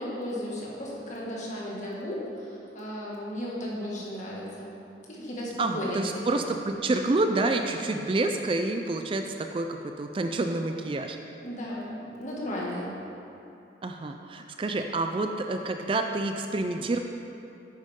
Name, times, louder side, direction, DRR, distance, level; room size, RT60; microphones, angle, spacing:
voice 1, 0.0-4.7 5.1-6.5 11.4-12.9, left 1 dB, 40° left, -5 dB, 2.0 m, -35 dB
voice 2, 5.6-11.2 13.8-17.0, right 2 dB, 30° right, 5 dB, 0.4 m, -28 dB
10.5 x 9.2 x 3.7 m, 2.8 s
head